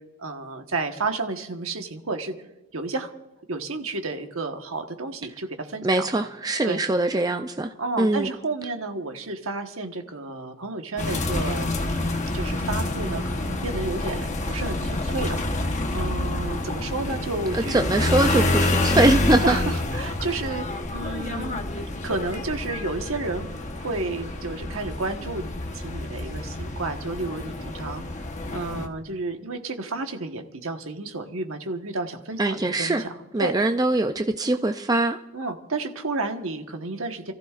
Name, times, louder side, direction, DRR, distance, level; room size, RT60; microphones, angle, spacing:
voice 1, 0.2-2.3 2.7-3.1 3.5-6.1 6.6-6.8 7.8-15.4 15.9-17.8 19.4-21.6 22.0-23.5 23.7-25.5 25.7-33.5 35.3-37.3, right 3 dB, 65° right, 1.3 m, -31 dB
voice 2, 5.8-8.3 17.5-19.5 32.4-33.0 33.3-35.2, right 2 dB, 15° right, 0.4 m, -22 dB
sound 1, 11.0-28.9, left 1 dB, 35° left, 1.1 m, -28 dB
30.0 x 14.5 x 2.5 m
head